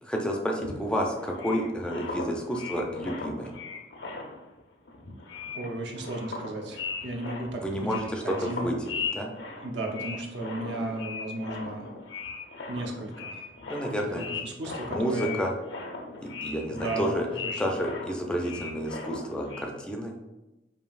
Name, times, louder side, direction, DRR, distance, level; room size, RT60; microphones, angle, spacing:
voice 1, 0.0-3.5 7.6-9.3 13.7-14.3 14.6-15.5 16.2-17.3 17.6-20.1, equal, 5° left, 1 dB, 0.4 m, -30 dB
sound 1, 0.6-4.6 4.9-19.6, left 4 dB, 80° left, 0.6 m, -38 dB
voice 2, 5.5-8.7 9.6-11.9 12.7-13.5 14.1-15.4 16.7-17.6, right 2 dB, 75° right, 1 dB, 0.7 m, -35 dB
5.0 x 2.7 x 2.4 m, 1.0 s
head